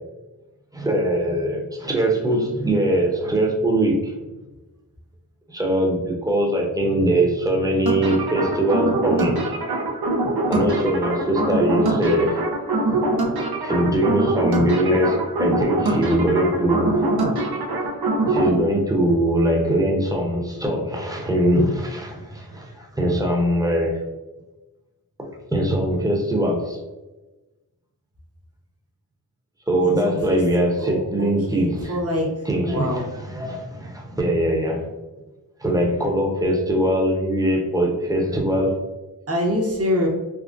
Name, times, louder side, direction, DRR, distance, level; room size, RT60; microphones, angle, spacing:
voice 1, 0.7-4.4 5.5-9.6 10.5-12.4 13.6-17.1 18.3-24.0 25.2-26.8 29.7-32.0 32.4-34.9 35.6-38.8, right 1 dB, 10° right, 0 dB, 0.6 m, -22 dB
sound 1, 7.9-18.5, right 2 dB, 90° right, 0.5 m, -23 dB
voice 2, 29.8-30.4 30.8-32.3 32.7-33.0 39.3-40.1, left 1 dB, 40° right, -1 dB, 0.8 m, -25 dB
3.5 x 2.1 x 2.5 m, 1.1 s
wide cardioid pair, 55°, 36 cm